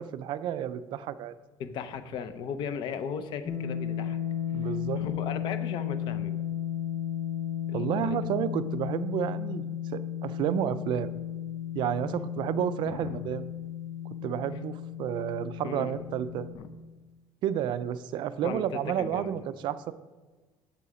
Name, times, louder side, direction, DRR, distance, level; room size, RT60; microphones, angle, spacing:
voice 1, 0.0-1.3 4.5-5.0 7.7-11.1 11.7-13.5 14.2-16.5 17.4-19.9, right 10 dB, 60° right, 14 dB, 0.4 m, -31 dB
voice 2, 1.6-4.2 4.6-6.4 7.7-8.2 12.8-13.3 15.6-15.9 16.5-16.7 18.4-19.5, left 7 dB, 60° left, 10 dB, 0.7 m, -37 dB
sound 1, 3.5-16.5, left 10 dB, 15° left, 0.8 m, -34 dB
7.6 x 6.9 x 5.0 m, 1.3 s
cardioid pair, 155°, 9 cm